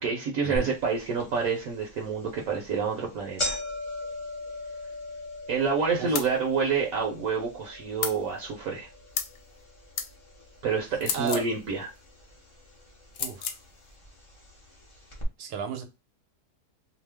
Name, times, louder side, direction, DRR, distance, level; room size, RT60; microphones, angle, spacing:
voice 1, 0.0-3.6 5.5-8.9 10.6-11.9, right 5 dB, 70° right, 1.1 m, -28 dB
sound 1, 0.6-0.7 1.2-1.3 2.1-2.3 2.6-2.8 3.0-11.2 11.5-12.2 13.0-13.1 14.1-14.2 14.4-14.5 15.1-15.2, left 1 dB, 30° left, 0.6 m, -38 dB
sound 2, 6.1-6.3 8.0-8.2 9.1-9.4 10.0-10.1 11.0-11.5 13.1-13.6, left 7 dB, 75° left, 1.1 m, -31 dB
voice 2, 11.1-11.5 13.2-13.5 15.4-15.8, right 7 dB, 90° right, 1.2 m, -34 dB
2.8 x 2.0 x 3.3 m
omnidirectional pair, 1.7 m